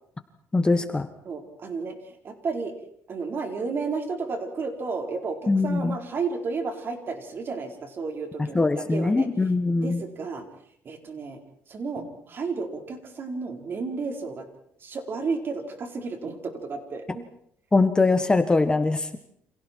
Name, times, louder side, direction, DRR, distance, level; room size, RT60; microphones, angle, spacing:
voice 1, 0.5-1.1 5.5-6.0 8.5-10.0 17.7-19.2, left 3 dB, 15° left, 9 dB, 1.4 m, -22 dB
voice 2, 1.2-1.9 2.2-2.7 3.1-9.3 9.7-10.5 10.8-11.4 11.7-14.5 14.8-17.2, right 4 dB, 45° right, 4 dB, 4.6 m, -32 dB
30.0 x 27.0 x 4.7 m, 0.68 s
cardioid pair, 120°, 5 cm